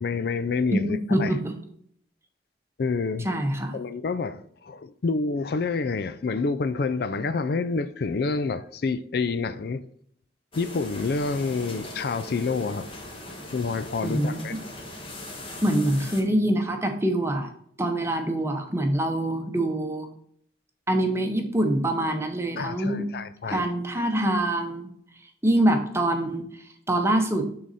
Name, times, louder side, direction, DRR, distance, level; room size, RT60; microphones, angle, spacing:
voice 1, 0.0-1.3 2.8-3.3 3.7-9.8 10.6-12.9 13.5-14.5 22.6-23.6, left 4 dB, 55° left, 0.4 m, -28 dB
voice 2, 0.7-1.5 3.2-3.8 14.0-14.4 15.6-17.5 17.8-20.1 20.9-23.1 23.5-24.9 25.4-26.5 26.9-27.4, right 1 dB, 15° right, 0.9 m, -24 dB
sound 1, 10.5-16.2, left 1 dB, 30° left, 1.2 m, -40 dB
9.3 x 3.9 x 4.1 m
head